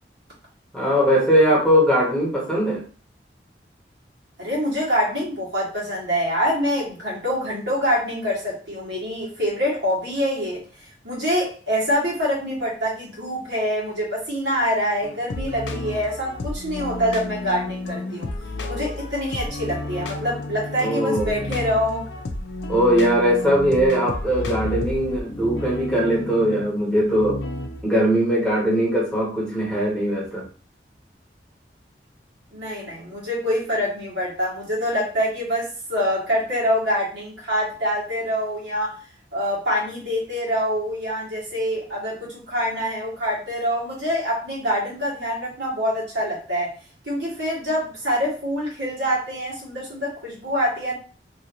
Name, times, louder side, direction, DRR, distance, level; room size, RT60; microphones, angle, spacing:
voice 1, 0.7-2.8 20.8-21.5 22.7-27.4 27.8-30.5, equal, 5° left, -5 dB, 0.9 m, -20 dB
voice 2, 4.4-10.6 11.0-18.3 18.7-22.0 32.5-38.9 39.3-46.7 47.0-50.9, equal, 90° right, -5 dB, 1.6 m, -25 dB
sound 1, 15.0-27.8, left 2 dB, 80° left, 0.4 m, -32 dB
3.0 x 2.5 x 2.8 m, 0.38 s
head